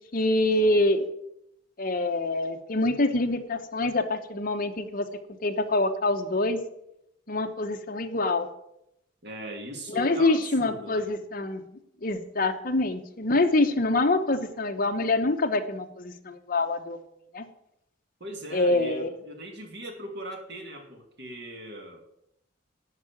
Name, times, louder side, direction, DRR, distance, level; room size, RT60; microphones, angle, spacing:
voice 1, 0.1-1.1 1.8-5.1 5.4-6.6 7.3-8.5 9.9-11.6 12.0-17.0 17.3-17.4 18.5-19.1, left 2 dB, 45° left, 6 dB, 1.0 m, -25 dB
voice 2, 9.2-11.1 18.2-22.0, right 1 dB, 55° right, 3 dB, 2.2 m, -39 dB
11.5 x 4.8 x 8.5 m, 0.79 s
head